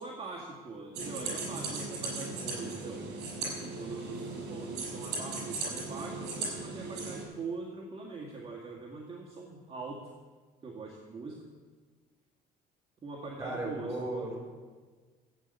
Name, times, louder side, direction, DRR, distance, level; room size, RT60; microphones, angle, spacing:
voice 1, 0.0-3.0 3.8-10.1 10.6-11.4 13.0-14.3, right 3 dB, 35° right, -1 dB, 2.0 m, -42 dB
sound 1, 0.9-7.2, right 3 dB, 80° right, 5.8 m, -37 dB
voice 2, 13.4-14.4, right 2 dB, 15° right, 0 dB, 5.1 m, -35 dB
14.0 x 8.4 x 8.4 m, 1.4 s
cardioid pair, 110°, 17 cm